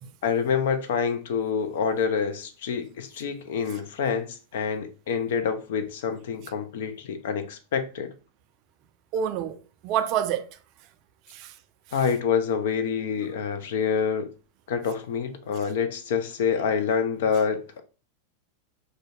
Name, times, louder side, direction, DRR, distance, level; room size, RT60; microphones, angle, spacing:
voice 1, 0.2-8.1 11.9-14.3 14.7-17.8, left 6 dB, 55° left, 0.4 m, -27 dB
voice 2, 9.1-10.6 11.3-11.6, right 9 dB, 40° right, 0.3 m, -28 dB
2.5 x 2.1 x 3.8 m
figure-of-eight pair, 90°, 0 cm